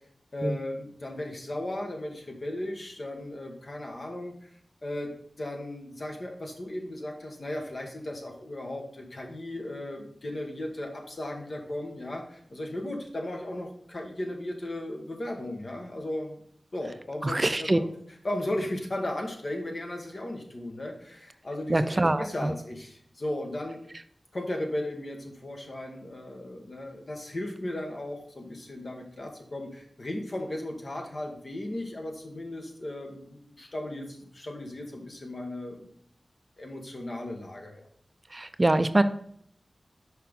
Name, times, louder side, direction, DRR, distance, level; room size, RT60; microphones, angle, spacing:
voice 1, 0.3-4.5 4.8-5.1 5.4-16.4 16.7-17.9 18.2-23.8 24.3-35.9 36.6-37.8, left 1 dB, 60° left, 1 dB, 1.4 m, -36 dB
voice 2, 17.2-17.8 21.7-22.5 38.3-39.0, right 2 dB, 35° right, 11 dB, 0.4 m, -24 dB
5.9 x 4.7 x 3.7 m, 0.65 s
cardioid pair, 40°, 0 cm